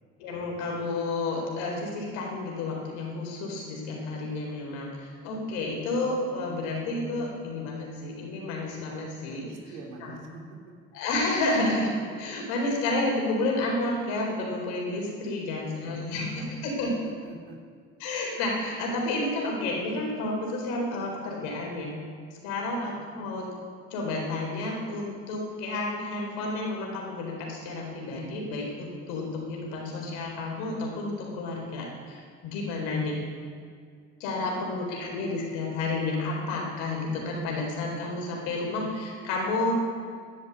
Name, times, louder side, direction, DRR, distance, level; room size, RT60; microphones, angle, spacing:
voice 1, 0.2-9.5 10.0-10.1 10.9-17.0 18.0-21.9 22.4-23.5 23.9-33.1 34.2-39.7, left 2 dB, 80° left, -1 dB, 4.3 m, -31 dB
voice 2, 9.3-10.6 15.5-16.0 16.4-16.7 17.2-17.6, right 4 dB, 85° right, 1 dB, 2.9 m, -47 dB
11.5 x 11.0 x 8.2 m, 2.1 s
supercardioid pair, 75°, 33 cm